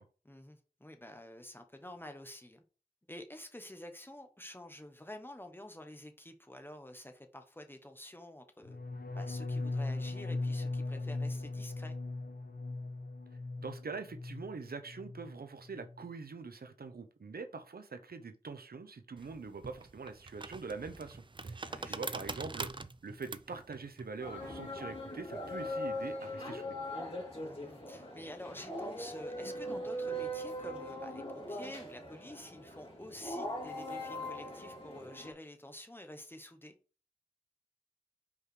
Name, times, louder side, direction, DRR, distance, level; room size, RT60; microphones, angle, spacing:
voice 1, 0.2-2.6 3.1-8.8 9.1-12.0 21.6-22.2 27.4-36.7, left 1 dB, 15° left, 1.1 m, -49 dB
sound 1, 8.6-14.6 14.9-15.4 15.6-16.0, left 2 dB, 75° left, 0.8 m, -38 dB
voice 2, 13.6-22.7 23.0-26.7, right 4 dB, 85° right, 0.8 m, -44 dB
sound 2, 19.2-25.8, right 3 dB, 30° right, 0.4 m, -44 dB
sound 3, 24.2-35.3, equal, 35° left, 3.0 m, -41 dB
5.4 x 4.9 x 4.6 m
wide cardioid pair, 70°, 15 cm